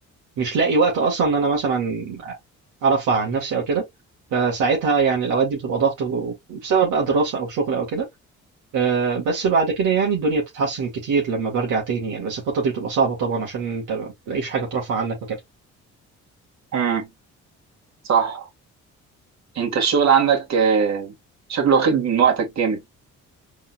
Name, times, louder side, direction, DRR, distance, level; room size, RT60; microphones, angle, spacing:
voice 1, 0.4-2.3 2.8-3.8 4.3-8.0 8.7-15.4, right 5 dB, 90° right, 1.8 m, -22 dB
voice 2, 16.7-17.1 18.0-18.5 19.6-21.1 21.5-22.8, right 6 dB, 65° right, 2.1 m, -19 dB
4.1 x 3.8 x 2.4 m
cardioid pair, 90°, 30 cm